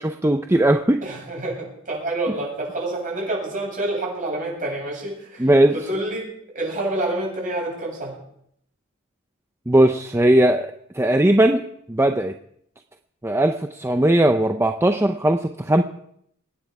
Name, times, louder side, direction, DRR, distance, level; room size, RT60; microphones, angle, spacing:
voice 1, 0.2-1.0 5.4-5.8 9.7-12.3 13.2-15.8, right 1 dB, 10° right, 6 dB, 0.6 m, -18 dB
voice 2, 1.0-8.1, right 2 dB, 40° right, -3 dB, 8.0 m, -28 dB
24.5 x 9.6 x 4.8 m, 0.72 s
head